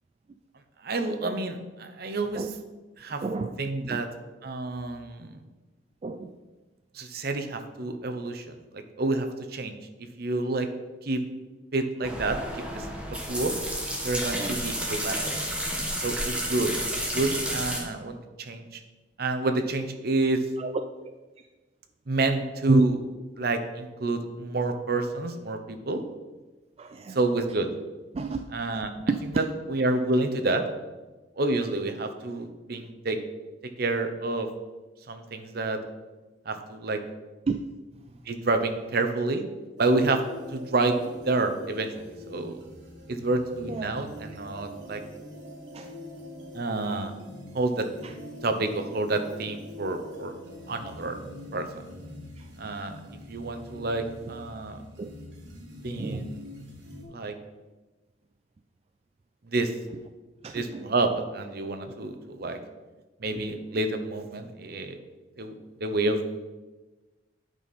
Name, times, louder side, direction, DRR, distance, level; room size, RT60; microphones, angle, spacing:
voice 1, 0.8-2.5 3.0-3.2 3.6-4.1 4.4-5.4 6.9-9.8 10.2-10.7 11.0-11.2 11.7-12.9 13.3-13.5 14.0-15.2 16.0-18.8 19.2-20.4 22.1-23.0 23.4-26.0 27.1-27.7 28.5-28.9 29.4-30.6 31.4-33.2 33.8-34.5 35.1-35.8 36.5-37.0 38.3-39.4 39.8-40.2 40.5-41.0 41.2-42.6 43.1-45.0 46.5-47.1 47.5-47.9 48.4-50.3 50.7-51.2 51.5-51.8 52.6-53.0 53.3-54.8 55.8-56.4 57.1-57.3 59.5-59.7 60.5-62.6 63.2-65.0 65.4-66.2, right 2 dB, 60° right, 7 dB, 0.8 m, -28 dB
voice 2, 3.2-3.6 3.8-4.0 6.0-6.4 14.3-14.5 20.6-20.7 21.0-21.1 22.7-22.8 26.8-27.2 28.1-28.4 29.1-29.2 37.5-37.6 43.7-43.9 45.7-46.0 48.0-48.1 52.4-52.5 53.4-53.5 55.0-55.1 56.0-56.3 60.4-60.9 61.9-62.0, right 3 dB, 35° right, 6 dB, 0.3 m, -29 dB
sound 1, 12.0-17.8, right 1 dB, 5° right, 1.2 m, -31 dB
sound 2, 39.8-57.0, left 1 dB, 85° right, 1.6 m, -44 dB
9.2 x 5.4 x 4.2 m, 1.2 s
head